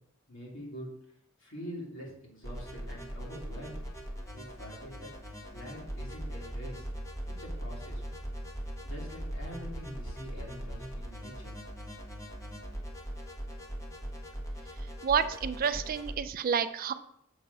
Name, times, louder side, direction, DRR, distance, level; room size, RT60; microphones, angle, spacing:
voice 1, 0.3-0.9 1.4-3.8 4.3-6.8 7.4-8.0 8.6-11.5, equal, 60° left, -3 dB, 2.8 m, -45 dB
sound 1, 2.4-16.1, equal, 15° left, 1.2 m, -40 dB
voice 2, 15.0-16.9, right 7 dB, 45° right, 11 dB, 0.4 m, -29 dB
7.0 x 6.4 x 4.1 m, 0.73 s
head